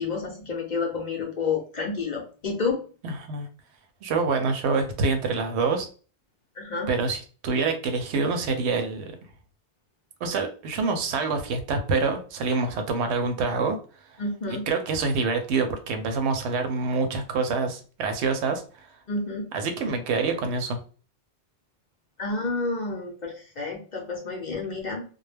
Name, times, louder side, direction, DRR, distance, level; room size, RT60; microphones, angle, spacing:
voice 1, 0.0-2.8 6.6-6.9 14.2-14.7 19.1-19.5 22.2-25.0, left 4 dB, 50° left, 0 dB, 0.6 m, -30 dB
voice 2, 3.0-3.5 4.0-5.9 6.9-9.0 10.2-13.8 14.1-14.2 14.5-18.9 19.5-20.8, right 4 dB, 80° right, 6 dB, 0.8 m, -26 dB
2.2 x 2.0 x 3.2 m, 0.38 s
omnidirectional pair, 1.1 m